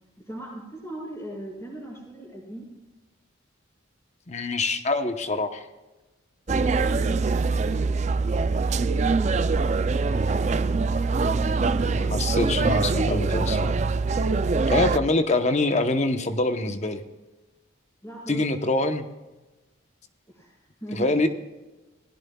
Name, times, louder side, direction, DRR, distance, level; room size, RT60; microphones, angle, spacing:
voice 1, 0.2-2.7 6.5-10.3 11.1-12.1 14.3-15.0 18.0-18.5 20.3-21.1, right 1 dB, 15° left, -11 dB, 4.9 m, -40 dB
voice 2, 4.3-5.7 11.9-13.7 14.7-17.0 18.3-19.1 20.9-21.3, left 2 dB, 35° left, 8 dB, 0.9 m, -25 dB
sound 1, 6.5-15.0, right 4 dB, 35° right, 0.4 m, -23 dB
19.5 x 16.5 x 2.3 m, 1.1 s
head